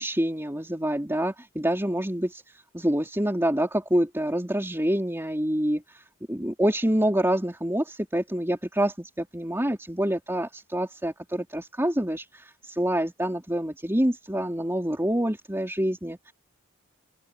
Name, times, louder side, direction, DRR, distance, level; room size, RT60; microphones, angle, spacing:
voice 1, 0.0-6.0 6.3-16.3, right 1 dB, 10° right, 3.9 m, -27 dB
open air
head